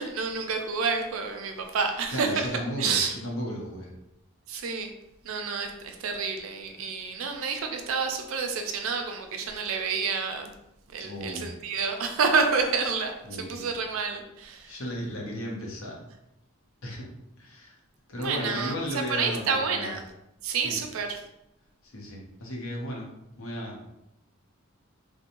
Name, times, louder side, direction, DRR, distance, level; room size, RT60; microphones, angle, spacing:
voice 1, 0.0-2.5 2.8-3.1 4.5-4.9 5.2-10.5 10.9-14.7 18.2-20.0 20.4-21.2, right 5 dB, 75° right, 5 dB, 0.4 m, -29 dB
voice 2, 1.8-3.9 6.8-6.9 11.0-11.5 13.2-13.7 14.6-16.0 16.8-17.1 17.4-17.8 18.1-19.9 20.5-20.8 21.8-23.1 23.4-23.9, equal, 75° left, -2 dB, 0.7 m, -35 dB
2.8 x 2.1 x 2.5 m, 0.85 s
head